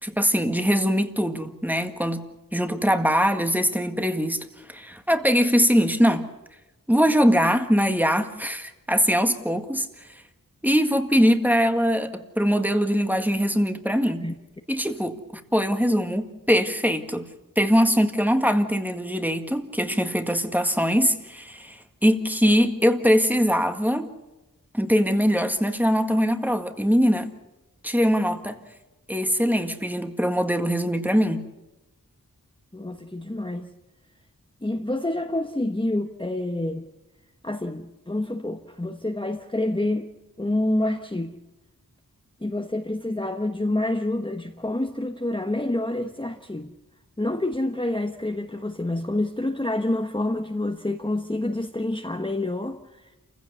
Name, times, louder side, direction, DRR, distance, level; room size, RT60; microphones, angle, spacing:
voice 1, 0.0-2.2 2.5-4.4 4.7-6.3 6.9-9.9 10.6-14.2 14.7-15.2 15.5-17.3 17.6-24.1 24.7-27.3 27.8-28.6 29.1-31.4, equal, 5° right, 7 dB, 1.8 m, -22 dB
voice 2, 32.7-33.7 34.6-36.9 37.4-40.1 40.4-41.4 42.4-46.7 47.2-53.1, left 1 dB, 15° left, 3 dB, 1.2 m, -27 dB
28.0 x 16.0 x 6.9 m, 1.0 s
wide cardioid pair, 40°, 35 cm